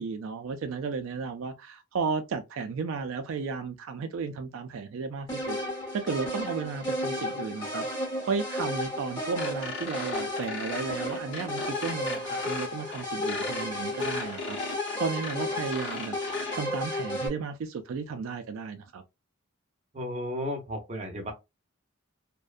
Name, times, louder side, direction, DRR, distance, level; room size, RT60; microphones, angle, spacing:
voice 1, 0.0-5.6 5.9-14.6 15.0-16.2 16.5-19.0, right 5 dB, 75° right, 0.3 m, -34 dB
sound 1, 5.3-17.3, left 1 dB, 20° left, 0.9 m, -33 dB
sound 2, 9.4-16.6, left 3 dB, 65° left, 0.8 m, -38 dB
voice 2, 19.9-21.3, equal, 35° right, 0.6 m, -34 dB
2.5 x 2.1 x 2.3 m
head